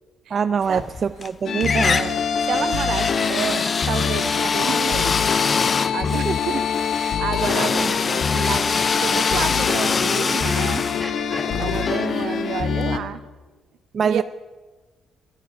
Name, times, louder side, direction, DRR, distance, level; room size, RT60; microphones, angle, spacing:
voice 1, 0.3-2.0 6.3-6.4 13.9-14.2, right 6 dB, 45° right, 13 dB, 0.4 m, -23 dB
sound 1, 0.7-1.3 1.6-12.5, left 5 dB, 35° left, 0.4 m, -25 dB
sound 2, 1.4-13.0, left 7 dB, 60° left, 1.1 m, -24 dB
voice 2, 1.8-2.2 2.5-5.2 5.9-6.6 6.9-10.9 11.6-13.2 14.0-14.2, right 9 dB, 75° right, 11 dB, 1.0 m, -30 dB
sound 3, 2.4-5.7 6.7-12.6, equal, ahead, 2.3 m, -40 dB
18.5 x 11.5 x 5.7 m, 1.3 s
cardioid pair, 90°, 0 cm